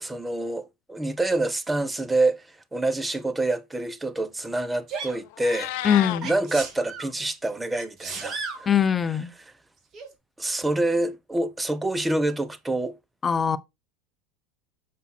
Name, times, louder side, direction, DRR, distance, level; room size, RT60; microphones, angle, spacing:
voice 1, 0.0-5.7 6.2-8.8 9.0-9.5 10.4-13.0, right 2 dB, 10° right, 1.1 m, -27 dB
Sneeze, 4.9-5.2 6.2-7.1 7.7-8.6 9.9-10.1, right 5 dB, 40° right, 2.4 m, -34 dB
Meow, 5.2-6.2, left 15 dB, 65° left, 0.5 m, -31 dB
voice 2, 5.8-6.3 8.7-9.3 13.2-13.6, left 8 dB, 25° left, 0.7 m, -22 dB
7.5 x 5.4 x 4.2 m
hypercardioid pair, 75°, 0 cm